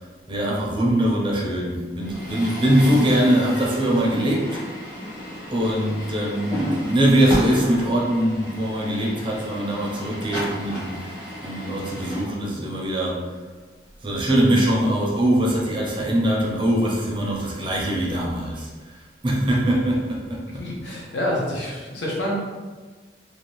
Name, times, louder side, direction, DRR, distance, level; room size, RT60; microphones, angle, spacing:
voice 1, 0.3-4.6 5.5-11.1 11.4-13.3 14.0-20.6, right 1 dB, 25° right, -2 dB, 0.5 m, -22 dB
Truck, 2.0-12.2, equal, 20° left, 0.9 m, -32 dB
voice 2, 20.5-22.4, left 1 dB, 75° left, -3 dB, 0.7 m, -27 dB
2.5 x 2.0 x 3.0 m, 1.4 s
head